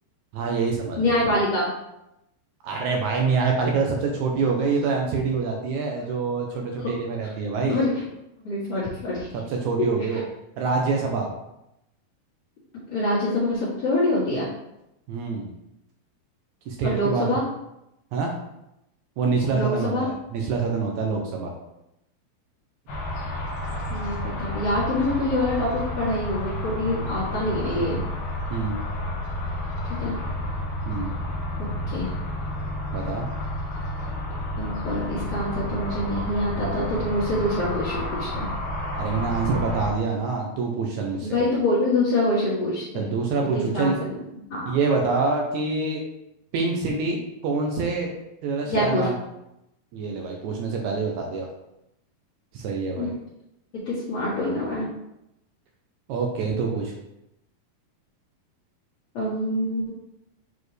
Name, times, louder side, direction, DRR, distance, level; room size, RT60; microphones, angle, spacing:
voice 1, 0.3-1.1 2.6-7.8 9.3-10.2 10.6-11.3 15.1-15.5 16.7-17.3 18.1-18.3 19.2-21.5 28.5-28.7 30.8-31.1 32.9-33.3 38.9-41.4 42.9-44.0 44.7-46.0 46.5-47.2 47.4-48.1 48.4-49.1 49.9-51.5 52.5-53.1 56.1-56.9, right 4 dB, 80° right, 1 dB, 1.7 m, -26 dB
voice 2, 1.0-1.7 6.8-6.9 7.2-7.3 7.7-7.9 8.4-9.3 10.1-10.2 12.9-14.5 16.8-17.4 19.5-20.1 23.9-28.0 30.0-30.2 31.9-32.1 34.6-38.5 41.2-43.1 43.5-44.2 44.5-44.7 48.6-49.1 53.0-53.1 53.9-54.9 59.1-59.9, left 1 dB, 55° left, -10 dB, 2.2 m, -25 dB
sound 1, 22.9-39.9, left 1 dB, 80° left, 1.1 m, -30 dB
7.1 x 4.2 x 3.2 m, 0.86 s
omnidirectional pair, 4.3 m